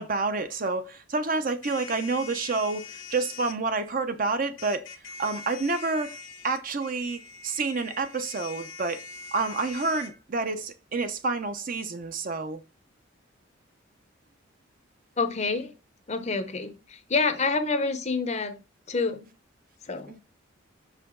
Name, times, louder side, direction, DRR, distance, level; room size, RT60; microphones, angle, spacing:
voice 1, 0.0-4.9 5.2-6.1 6.4-9.0 9.3-12.6 20.1-20.2, right 3 dB, 45° right, 0.7 m, -29 dB
sound 1, 1.6-3.6 4.6-10.1, left 5 dB, 85° left, 1.1 m, -43 dB
voice 2, 15.2-15.7 16.1-18.6 18.9-19.3 19.8-20.2, left 4 dB, 35° left, 0.7 m, -28 dB
6.2 x 4.9 x 3.8 m
head